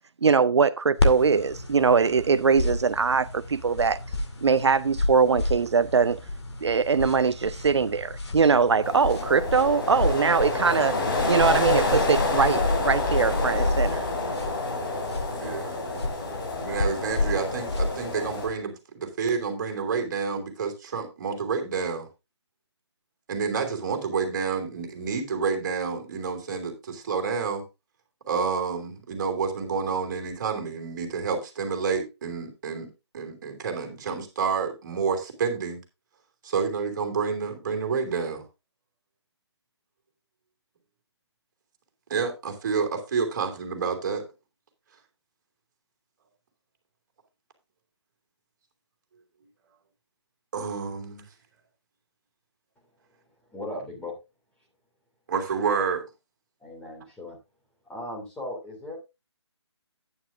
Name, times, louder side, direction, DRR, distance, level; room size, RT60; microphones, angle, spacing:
voice 1, 0.2-4.0 4.4-6.2 6.6-11.0 11.3-14.0, right 5 dB, 70° right, 0.5 m, -22 dB
sound 1, 1.0-18.5, left 2 dB, 65° left, 2.3 m, -31 dB
sound 2, 8.8-18.5, left 2 dB, 50° left, 3.6 m, -28 dB
voice 2, 15.3-15.8 16.6-22.1 23.3-27.6 28.3-35.8 36.4-38.4 42.1-44.2 50.5-51.2 55.3-56.0, right 5 dB, 40° right, 3.2 m, -29 dB
voice 3, 53.5-54.1 56.6-57.4 57.8-59.0, left 1 dB, 5° left, 2.9 m, -37 dB
11.0 x 9.6 x 2.7 m
figure-of-eight pair, 145°, 15 cm